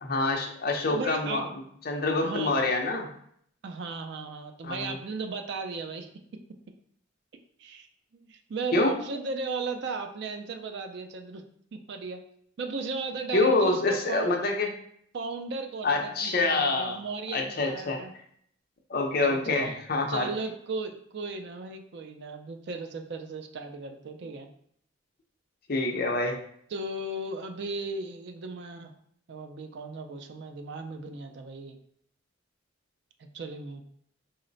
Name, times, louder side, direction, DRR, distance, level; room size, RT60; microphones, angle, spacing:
voice 1, 0.0-1.5 1.8-3.1 4.6-5.0 8.7-8.9 13.3-14.7 15.8-17.0 17.3-18.0 18.9-20.3 25.7-26.4, left 3 dB, 45° left, 2 dB, 0.6 m, -26 dB
voice 2, 0.9-1.5 2.2-2.5 3.6-6.1 7.6-7.9 8.1-11.4 11.7-12.2 12.6-14.4 15.1-18.1 19.2-19.7 20.1-24.5 26.7-28.9 29.3-31.8 33.3-33.8, right 3 dB, 55° right, 6 dB, 0.4 m, -36 dB
3.9 x 2.1 x 3.8 m, 0.66 s
head